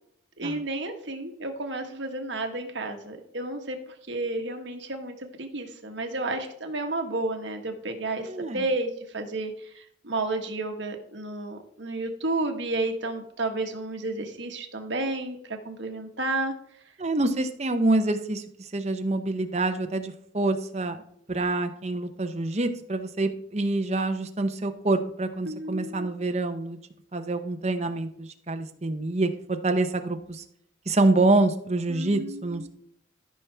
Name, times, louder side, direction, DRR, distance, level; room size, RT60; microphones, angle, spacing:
voice 1, 0.4-3.8 4.1-16.5 25.4-26.1 31.9-32.7, right 2 dB, 70° right, 4 dB, 1.5 m, -31 dB
voice 2, 8.3-8.6 17.0-21.0 21.3-26.8 27.1-30.4 30.9-32.7, right 2 dB, 35° right, 7 dB, 0.8 m, -26 dB
13.5 x 5.9 x 3.5 m, 0.69 s
head